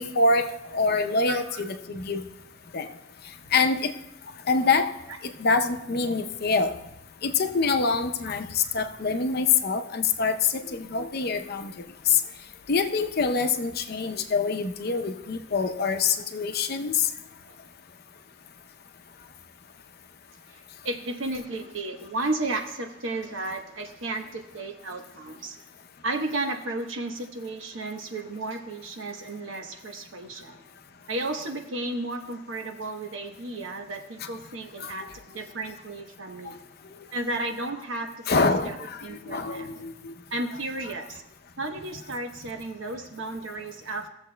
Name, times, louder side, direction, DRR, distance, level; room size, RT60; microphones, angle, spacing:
voice 1, 0.0-2.3 2.7-2.9 3.5-3.9 4.5-6.8 7.2-11.7 12.0-12.2 12.7-17.1 34.2-34.3 34.8-35.1 36.4-36.5 36.8-37.0 38.3-40.1, left 4 dB, 55° left, 8 dB, 0.6 m, -25 dB
voice 2, 1.3-1.6 17.5-17.6 20.8-25.6 26.0-30.6 31.1-35.1 35.3-36.6 37.1-38.8 39.0-39.9 40.3-41.2 41.6-44.1, right 2 dB, 85° right, 4 dB, 1.0 m, -33 dB
18.0 x 7.1 x 2.2 m, 0.85 s
head